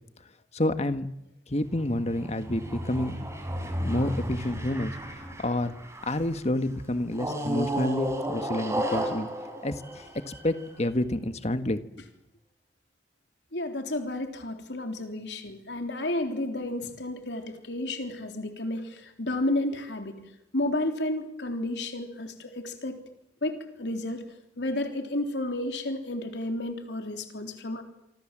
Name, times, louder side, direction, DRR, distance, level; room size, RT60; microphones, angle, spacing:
voice 1, 0.5-1.1 1.5-3.2 3.8-5.7 6.0-9.3 9.6-11.8, left 1 dB, 40° left, 10 dB, 1.7 m, -29 dB
sound 1, 1.7-6.3 7.1-10.7, right 1 dB, 15° right, 5.6 m, -33 dB
voice 2, 13.5-20.2 20.5-23.0 23.4-24.3 24.6-27.8, left 1 dB, 75° left, 5 dB, 3.7 m, -31 dB
27.5 x 26.0 x 7.6 m, 0.82 s
head